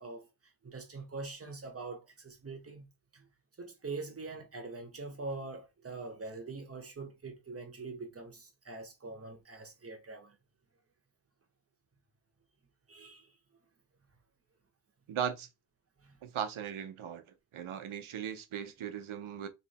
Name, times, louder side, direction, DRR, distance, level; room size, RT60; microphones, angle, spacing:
voice 1, 0.0-2.9 3.1-3.3 3.6-10.4 12.9-13.4 16.0-16.2, right 3 dB, 30° right, 1.0 m, -44 dB
voice 2, 15.1-15.5 16.2-17.2 17.5-19.5, right 8 dB, 90° right, 0.8 m, -38 dB
3.1 x 3.1 x 4.1 m
wide cardioid pair, 165°, 47 cm